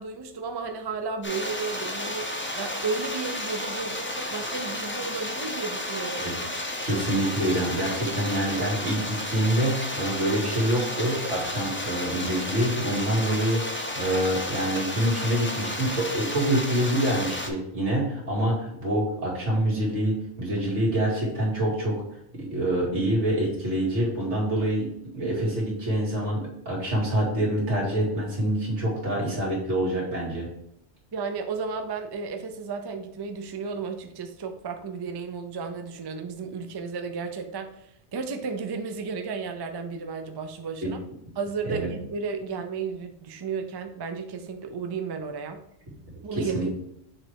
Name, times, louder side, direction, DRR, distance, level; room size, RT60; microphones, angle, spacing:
voice 1, 0.0-6.3 31.1-37.7 38.1-41.0 41.4-45.6 46.2-46.7, right 5 dB, 40° right, 6 dB, 0.3 m, -33 dB
sound 1, 1.2-17.5, left 1 dB, 15° left, 0.5 m, -32 dB
voice 2, 6.8-22.0 22.3-24.9 25.1-30.5 40.8-40.9 41.7-41.9 46.3-46.7, right 1 dB, 90° right, -4 dB, 2.2 m, -26 dB
6.4 x 3.2 x 4.6 m, 0.76 s
omnidirectional pair, 1.2 m